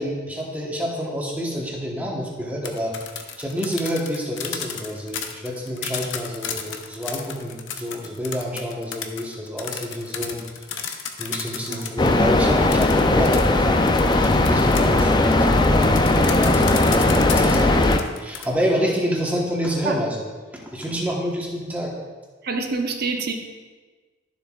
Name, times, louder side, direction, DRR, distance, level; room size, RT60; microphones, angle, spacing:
voice 1, 0.0-10.5 10.8-10.9 11.2-13.8 14.2-20.2 20.5-21.9, equal, 10° right, -2 dB, 1.1 m, -28 dB
sound 1, 2.5-12.1 12.7-18.5, left 7 dB, 70° left, 0.7 m, -33 dB
sound 2, 12.0-18.0, left 2 dB, 20° left, 0.4 m, -18 dB
voice 2, 22.4-23.3, right 4 dB, 50° right, 4 dB, 0.7 m, -26 dB
12.0 x 7.3 x 2.4 m, 1.3 s
head